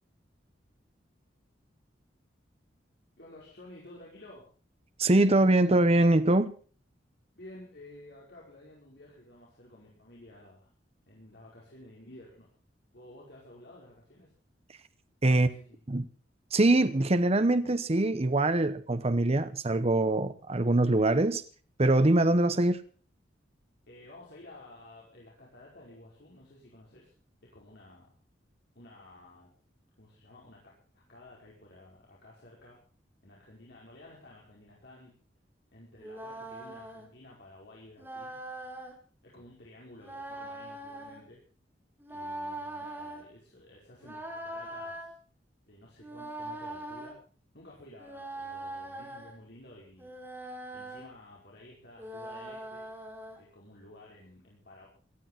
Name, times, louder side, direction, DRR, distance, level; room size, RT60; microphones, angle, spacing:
voice 1, 3.2-4.4 7.3-10.7 11.1-12.5 12.9-14.3 15.3-15.8 23.9-27.1 27.4-28.1 28.8-29.5 30.0-30.6 30.9-32.8 33.2-35.1 35.7-38.4 39.2-41.4 42.1-45.1 45.7-47.2 47.5-50.1 50.7-52.8 53.4-54.9, left 1 dB, 65° left, -4 dB, 5.2 m, -52 dB
voice 2, 5.0-6.5 15.2-15.5 15.9-16.0 16.5-21.4 21.8-22.8, right 2 dB, 35° right, 12 dB, 0.9 m, -23 dB
sound 1, 36.0-37.1 38.0-38.9 40.0-41.2 42.0-43.2 44.0-45.1 46.0-47.1 48.0-49.4 50.0-51.1 52.0-53.4, right 1 dB, 10° right, 4.0 m, -41 dB
18.5 x 13.0 x 5.7 m, 0.40 s
head